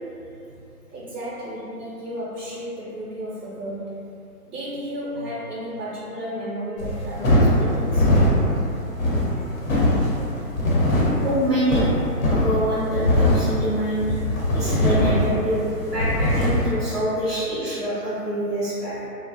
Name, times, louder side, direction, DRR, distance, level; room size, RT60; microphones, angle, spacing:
voice 1, 0.9-4.1 4.4-8.1, equal, 80° right, -7 dB, 0.6 m, -33 dB
sound 1, 6.8-16.7, left 1 dB, 60° left, 0.8 m, -21 dB
voice 2, 11.2-11.9 12.2-14.1 14.5-19.1, equal, ahead, -18 dB, 0.5 m, -25 dB
2.5 x 2.0 x 2.6 m, 2.7 s
figure-of-eight pair, 145°, 47 cm